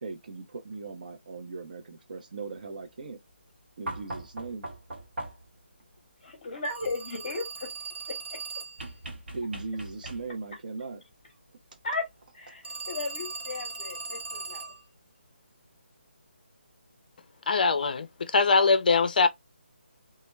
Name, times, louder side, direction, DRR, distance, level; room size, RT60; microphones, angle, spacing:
voice 1, 0.0-3.2 3.8-4.7 9.3-11.0, right 4 dB, 45° right, 0.6 m, -38 dB
sound 1, 3.9-5.6 8.8-10.5 12.1-12.2, right 1 dB, 65° right, 0.9 m, -40 dB
voice 2, 6.2-7.7 11.8-12.0 12.3-14.7, left 3 dB, 30° left, 0.8 m, -35 dB
Telephone, 6.6-9.0 12.6-14.8, right 4 dB, 90° right, 0.8 m, -39 dB
voice 3, 17.5-18.1 18.3-19.3, left 4 dB, 50° left, 0.4 m, -22 dB
2.2 x 2.1 x 3.2 m
hypercardioid pair, 170°, 6 cm